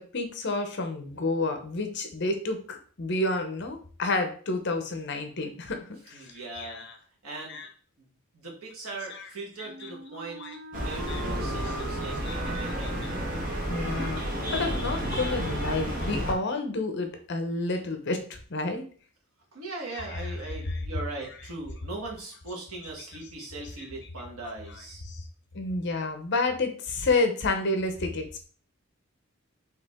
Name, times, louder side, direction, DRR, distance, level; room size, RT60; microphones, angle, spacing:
voice 1, 0.0-5.8 6.1-6.9 7.5-7.7 9.1-9.2 9.8-9.9 10.4-10.6 11.1-11.2 11.5-11.7 12.2-12.6 13.0-13.1 13.7-14.3 14.5-18.8 19.9-20.3 20.7-20.8 25.0-25.2 25.5-28.2, left 2 dB, 55° left, 6 dB, 0.8 m, -30 dB
voice 2, 6.1-6.8 7.2-7.6 8.0-8.1 8.3-10.4 10.7-13.3 19.5-25.0, right 3 dB, 85° right, -1 dB, 1.5 m, -40 dB
Wind instrument woodwind instrument, 9.6-16.5, right 3 dB, 65° right, 0.5 m, -42 dB
sound 1, 10.7-16.3, equal, 40° right, 1.1 m, -31 dB
4.8 x 3.0 x 3.5 m, 0.43 s
head